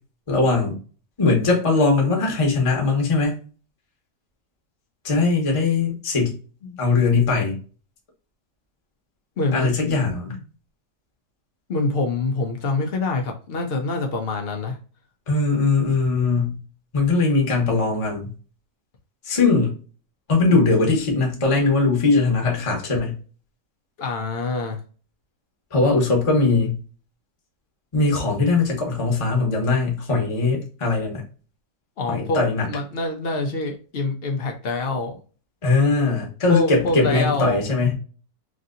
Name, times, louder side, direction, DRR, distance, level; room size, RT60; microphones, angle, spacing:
voice 1, 0.3-0.7 1.2-3.3 5.0-6.4 6.8-7.6 9.5-10.4 15.3-16.6 16.9-18.3 19.2-19.7 20.3-23.2 25.7-26.8 27.9-31.2 32.1-32.7 35.6-37.9, left 3 dB, 25° left, 0 dB, 0.7 m, -20 dB
voice 2, 9.4-9.7 10.3-10.4 11.7-14.8 24.0-24.8 32.0-35.2 36.5-37.6, left 3 dB, 75° left, 3 dB, 0.5 m, -25 dB
3.2 x 2.7 x 2.5 m, 0.37 s
omnidirectional pair, 1.8 m